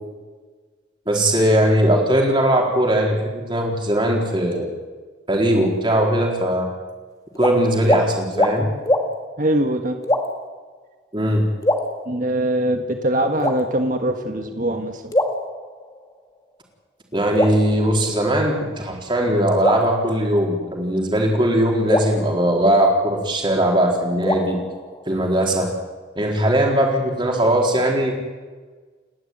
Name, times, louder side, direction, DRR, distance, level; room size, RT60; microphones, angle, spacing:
voice 1, 1.1-4.7 5.3-6.7 7.4-8.7 11.1-11.4 17.1-24.6 25.1-25.7 26.2-28.1, right 1 dB, 25° right, 0 dB, 4.2 m, -19 dB
sound 1, 7.3-7.5 7.8-8.0 8.3-8.5 8.9-9.1 10.0-10.5 11.6-12.5 13.4-14.1 15.1-16.1 17.3-18.5 19.6-20.8 21.9-23.3 24.2-25.4, left 1 dB, 20° left, 2.0 m, -24 dB
voice 2, 9.4-10.0 12.1-15.1, right 1 dB, 45° right, 4 dB, 1.6 m, -22 dB
29.5 x 12.0 x 9.4 m, 1.4 s
head